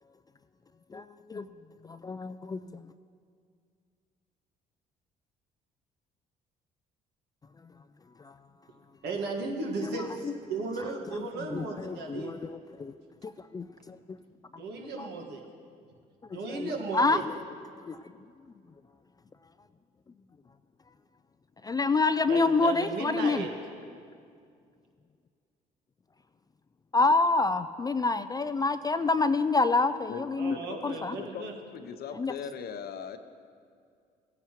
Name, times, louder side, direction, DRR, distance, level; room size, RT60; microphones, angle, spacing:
voice 1, 0.9-1.5 1.8-2.8 8.2-8.3 9.8-10.0 11.5-12.9 13.2-14.0 15.0-15.1 16.3-17.3 17.8-18.0 21.6-23.5 26.9-30.6 30.8-31.2 32.1-32.3, left 3 dB, 20° left, 12 dB, 0.3 m, -27 dB
voice 2, 9.0-12.4 14.6-15.4 16.3-17.2 22.3-23.5 30.4-31.5, right 3 dB, 65° right, 1 dB, 1.6 m, -35 dB
voice 3, 30.1-31.5 31.7-33.2, left 7 dB, 60° left, 10 dB, 0.7 m, -40 dB
16.5 x 9.8 x 3.0 m, 2.2 s
supercardioid pair, 65°, 18 cm